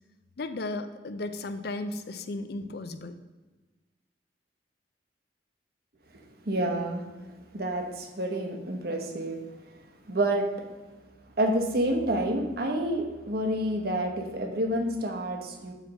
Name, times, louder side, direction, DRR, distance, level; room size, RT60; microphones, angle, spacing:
voice 1, 0.4-3.2, left 2 dB, 60° left, 10 dB, 0.5 m, -35 dB
voice 2, 6.4-7.1 7.5-9.4 10.1-10.5 11.4-15.7, right 1 dB, 55° right, 3 dB, 1.0 m, -28 dB
7.5 x 3.4 x 6.2 m, 1.2 s
head